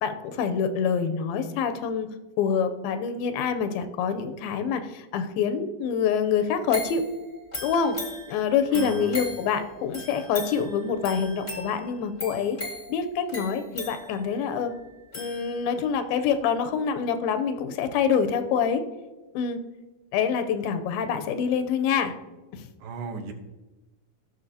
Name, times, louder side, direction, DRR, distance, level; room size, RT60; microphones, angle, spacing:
voice 1, 0.0-2.1 2.4-7.0 7.6-8.0 8.3-12.6 12.9-14.7 15.1-18.8 19.3-19.6 20.1-22.1 22.5-22.6, left 7 dB, 90° left, 9 dB, 2.5 m, -26 dB
sound 1, 6.7-16.0 16.4-16.5, left 1 dB, 50° left, 0.5 m, -39 dB
voice 2, 8.7-9.2 22.8-23.3, right 4 dB, 75° right, 5 dB, 2.5 m, -36 dB
15.5 x 6.3 x 2.8 m, 1.1 s
omnidirectional pair, 4.2 m